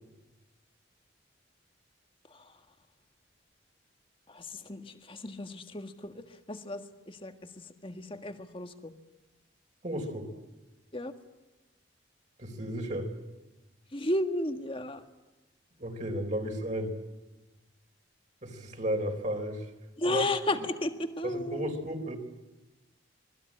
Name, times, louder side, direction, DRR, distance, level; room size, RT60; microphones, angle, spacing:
voice 1, 4.3-8.9 10.9-11.1 13.9-15.0 20.0-21.7, left 1 dB, 25° left, 7 dB, 1.7 m, -34 dB
voice 2, 9.8-10.3 12.4-13.1 15.8-17.0 18.4-19.7 20.1-20.2 21.2-22.2, equal, 40° right, 4 dB, 4.1 m, -33 dB
26.0 x 20.0 x 8.8 m, 1.1 s
head